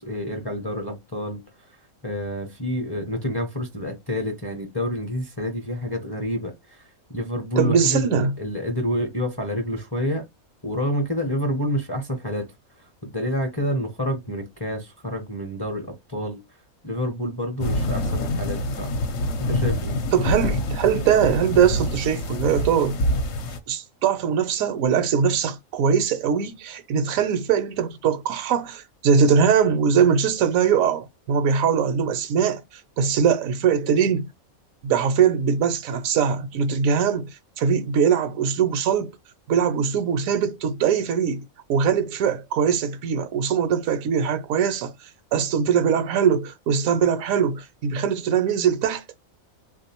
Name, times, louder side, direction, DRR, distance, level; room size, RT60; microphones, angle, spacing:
voice 1, 0.0-1.4 2.0-6.8 7.1-10.2 10.6-12.5 12.8-16.4 16.8-18.9 19.5-20.0, equal, 25° left, 0.6 m, -28 dB
voice 2, 7.6-8.3 20.1-23.0 23.7-34.3 34.8-37.3 37.6-39.1 39.5-41.4 41.7-49.0, right 7 dB, 75° right, 1.0 m, -21 dB
sound 1, 17.6-23.6, left 1 dB, 65° left, 1.0 m, -26 dB
3.6 x 2.6 x 2.8 m
omnidirectional pair, 1.5 m